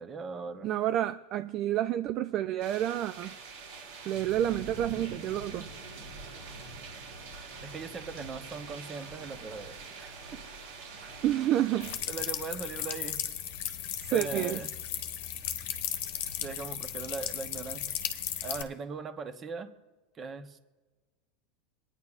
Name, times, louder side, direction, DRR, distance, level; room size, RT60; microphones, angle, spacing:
voice 1, 0.0-0.7 7.6-10.1 11.1-11.2 12.1-13.2 14.1-14.7 16.4-17.8 18.4-19.7 20.1-20.6, right 4 dB, 30° right, 8 dB, 0.9 m, -39 dB
voice 2, 0.6-3.4 4.1-5.7 11.2-12.0 14.0-14.6, right 12 dB, 45° right, 10 dB, 0.3 m, -29 dB
sound 1, 2.6-12.0, right 3 dB, 85° right, 3.0 m, -44 dB
sound 2, 11.8-18.6, left 10 dB, 70° left, 0.9 m, -35 dB
25.0 x 9.7 x 2.4 m, 1.2 s
supercardioid pair, 125°, 0 cm